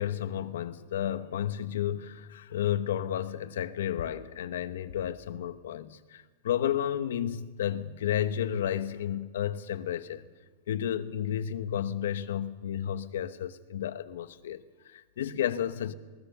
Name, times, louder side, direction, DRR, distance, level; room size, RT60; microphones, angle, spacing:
voice 1, 0.0-10.2 10.7-15.9, left 10 dB, 90° left, 1.1 m, -32 dB
21.0 x 19.5 x 6.8 m
supercardioid pair, 150°, 0 cm